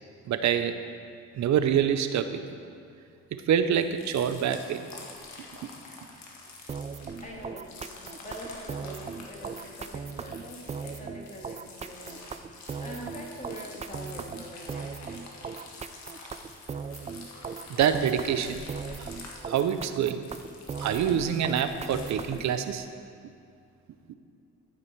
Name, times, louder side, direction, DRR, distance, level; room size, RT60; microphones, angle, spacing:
voice 1, 0.3-0.8 1.3-2.5 3.5-4.9 17.7-18.6 19.0-19.1 19.5-20.3 20.8-22.9, right 8 dB, 65° right, 10 dB, 0.7 m, -26 dB
sound 1, 3.7-22.7, left 3 dB, 65° left, 1.7 m, -48 dB
sound 2, 6.7-22.5, right 5 dB, 25° right, 0.4 m, -38 dB
voice 2, 7.2-15.2, equal, 25° left, -2 dB, 2.3 m, -44 dB
13.5 x 6.1 x 4.7 m, 2.4 s
cardioid pair, 90°, 30 cm